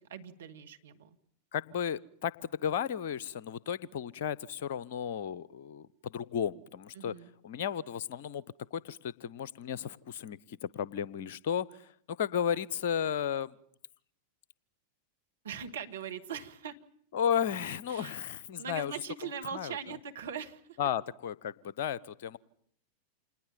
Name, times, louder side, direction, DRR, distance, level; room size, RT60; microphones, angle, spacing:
voice 1, 0.1-1.2 7.0-7.3 15.4-16.8 17.9-18.2 18.6-20.8, right 7 dB, 65° right, 5 dB, 1.9 m, -41 dB
voice 2, 1.5-7.2 7.4-8.4 8.7-13.5 17.1-18.9 19.5-19.8 20.8-22.4, left 8 dB, 55° left, 21 dB, 0.9 m, -34 dB
27.5 x 20.0 x 7.5 m, 0.67 s
figure-of-eight pair, 90°, 0 cm